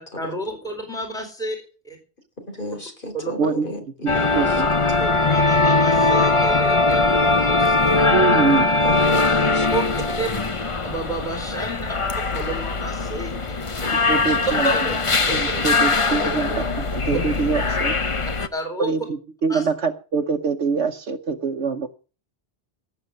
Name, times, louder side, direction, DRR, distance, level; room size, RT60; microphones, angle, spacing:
voice 1, 0.2-1.6 1.8-2.0 3.1-3.3 5.0-7.9 9.7-9.8 10.2-10.3 10.8-11.9 12.3-13.5 14.6-14.7 18.5-18.9 19.5-19.7, right 2 dB, 5° left, 2 dB, 4.0 m, -30 dB
voice 2, 2.4-4.6 4.9-5.0 8.4-9.7 13.8-14.4 14.7-15.0 15.3-15.8 16.1-16.6, left 1 dB, 50° left, 5 dB, 4.0 m, -33 dB
sound 1, 4.1-18.5, left 3 dB, 30° left, 1.0 m, -21 dB
voice 3, 4.3-4.7 8.1-8.7 14.1-14.7 15.3-18.0 18.8-19.0 19.4-21.9, right 5 dB, 85° right, 3 dB, 1.3 m, -24 dB
17.5 x 7.4 x 6.5 m, 0.35 s
omnidirectional pair, 1.1 m